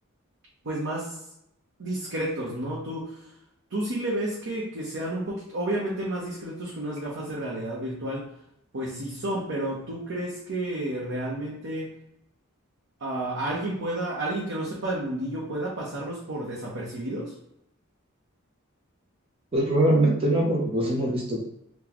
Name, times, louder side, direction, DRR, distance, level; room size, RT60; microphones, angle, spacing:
voice 1, 0.6-1.2 1.8-3.3 3.7-8.3 8.7-11.9 13.0-17.3, right 1 dB, 60° right, -5 dB, 0.8 m, -31 dB
voice 2, 19.5-21.4, right 1 dB, 25° right, -1 dB, 0.5 m, -22 dB
4.0 x 2.2 x 2.9 m, 0.79 s
head